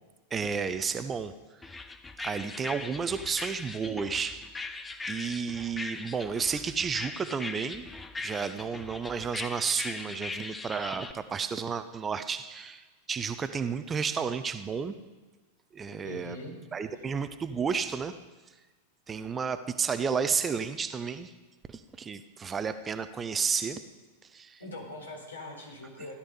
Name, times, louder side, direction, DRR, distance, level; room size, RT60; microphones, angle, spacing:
voice 1, 0.3-1.3 2.2-4.5 5.1-7.8 8.2-14.9 15.7-16.4 16.7-18.1 19.1-21.3 21.7-23.8 24.3-24.6, right 6 dB, 20° right, 11 dB, 0.7 m, -32 dB
sound 1, 1.6-11.1, left 3 dB, 10° left, 0.8 m, -40 dB
voice 2, 16.0-16.6 24.6-26.1, left 2 dB, 75° left, 0 dB, 3.7 m, -42 dB
16.0 x 11.5 x 5.4 m, 1.2 s
figure-of-eight pair, 90°, 0 cm